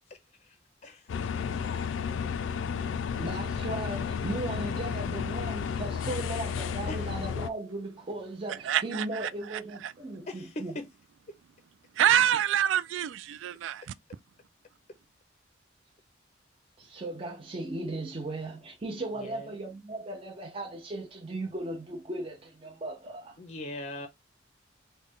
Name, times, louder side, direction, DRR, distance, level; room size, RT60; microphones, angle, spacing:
sound 1, 1.1-7.5, left 6 dB, 90° left, 0.3 m, -32 dB
voice 1, 3.2-10.8 16.8-23.4, right 2 dB, 30° right, 0.6 m, -37 dB
voice 2, 8.6-9.9 12.0-13.8, right 10 dB, 85° right, 0.3 m, -27 dB
voice 3, 10.3-10.7 19.2-19.5 23.4-24.1, left 1 dB, 35° left, 0.5 m, -40 dB
3.8 x 2.1 x 3.5 m
head